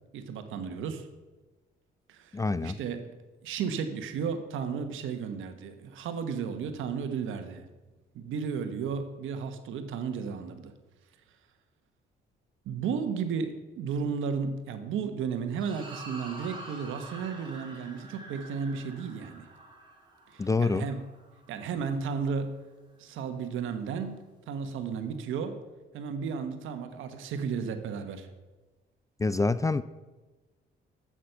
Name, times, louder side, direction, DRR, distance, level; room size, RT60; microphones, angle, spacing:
voice 1, 0.1-1.1 2.1-3.2 3.4-7.6 8.1-10.7 12.6-19.5 20.3-21.0 21.5-22.5 23.0-25.6 25.9-28.3, right 6 dB, 85° right, 8 dB, 1.2 m, -34 dB
voice 2, 2.3-2.8 20.4-20.9 29.2-29.8, left 3 dB, 15° left, 16 dB, 0.4 m, -26 dB
sound 1, 15.6-22.1, right 2 dB, 25° right, 3.7 m, -47 dB
12.5 x 8.2 x 5.8 m, 1.2 s
cardioid pair, 90°, 20 cm